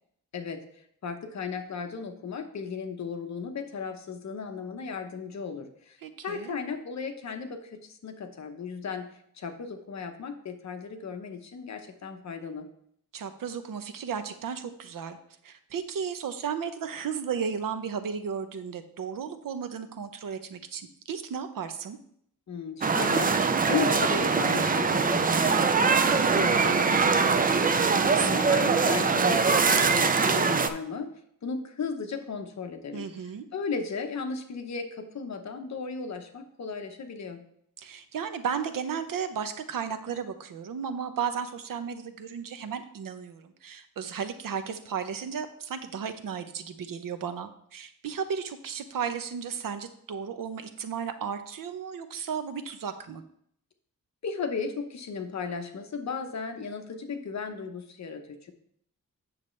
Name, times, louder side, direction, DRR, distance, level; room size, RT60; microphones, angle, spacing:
voice 1, 1.0-6.0 6.2-9.1 9.4-12.7 22.5-23.3 23.7-25.8 26.1-27.7 28.1-31.1 31.4-33.0 33.5-37.4 54.2-58.5, left 5 dB, 55° left, 5 dB, 0.9 m, -35 dB
voice 2, 6.0-6.5 13.1-15.2 15.4-22.0 27.9-28.4 32.9-33.5 37.8-53.2, right 7 dB, 75° right, 9 dB, 0.8 m, -34 dB
sound 1, 22.8-30.7, right 5 dB, 25° right, 0.4 m, -23 dB
Bowed string instrument, 24.2-28.4, right 2 dB, 50° right, 1.8 m, -40 dB
8.6 x 6.6 x 3.2 m, 0.68 s
wide cardioid pair, 160°, 34 cm